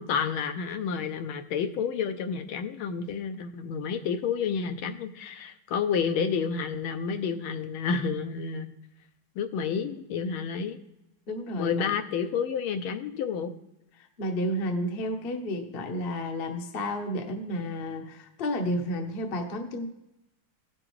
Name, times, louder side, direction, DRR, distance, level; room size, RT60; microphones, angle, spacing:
voice 1, 0.0-8.7 9.4-10.8 11.6-13.5, left 6 dB, 80° left, 7 dB, 1.5 m, -30 dB
voice 2, 11.3-11.9 14.0-19.9, left 1 dB, 50° left, 4 dB, 0.7 m, -31 dB
16.0 x 6.2 x 3.1 m, 0.87 s
omnidirectional pair, 2.3 m